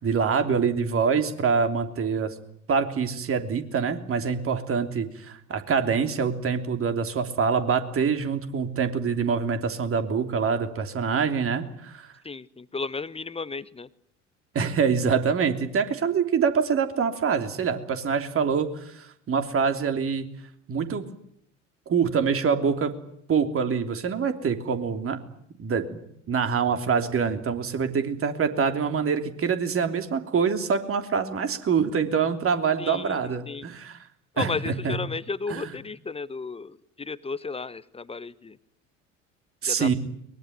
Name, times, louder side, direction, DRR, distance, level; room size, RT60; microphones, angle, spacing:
voice 1, 0.0-2.3 2.7-12.1 14.5-20.3 20.7-21.1 21.9-23.0 23.3-25.2 25.6-26.0 26.3-34.0 34.4-35.0 35.5-35.7 39.6-39.9, right 6 dB, 35° right, 7 dB, 3.2 m, -25 dB
voice 2, 12.2-13.9 32.8-33.2 33.5-33.6 34.3-38.6 39.7-39.9, left 4 dB, 15° left, 17 dB, 1.0 m, -33 dB
22.5 x 22.0 x 9.5 m, 0.71 s
figure-of-eight pair, 65°, 38 cm